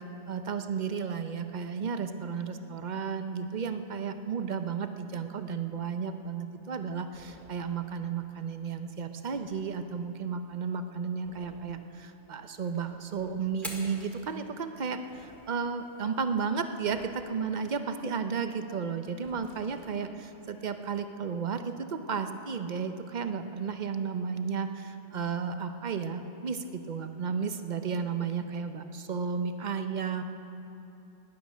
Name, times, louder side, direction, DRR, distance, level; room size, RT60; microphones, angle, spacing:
voice 1, 0.0-30.2, right 6 dB, 45° right, 8 dB, 0.6 m, -33 dB
sound 1, 7.1-7.5 9.3-9.6 11.2-11.7 12.6-13.4 14.9-15.4 16.8-17.3 19.2-20.0, left 2 dB, 85° left, 2.6 m, -56 dB
Fire, 13.5-21.5, equal, ahead, 1.9 m, -50 dB
17.5 x 10.5 x 6.2 m, 2.9 s
omnidirectional pair, 1.4 m